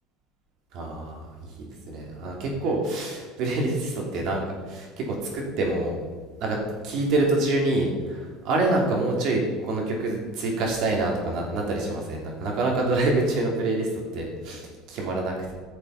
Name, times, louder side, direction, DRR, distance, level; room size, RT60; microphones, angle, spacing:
voice 1, 0.7-6.0 6.4-6.6 6.8-15.5, right 2 dB, 50° right, 0 dB, 3.0 m, -26 dB
14.0 x 6.7 x 5.7 m, 1.4 s
cardioid pair, 150°, 0 cm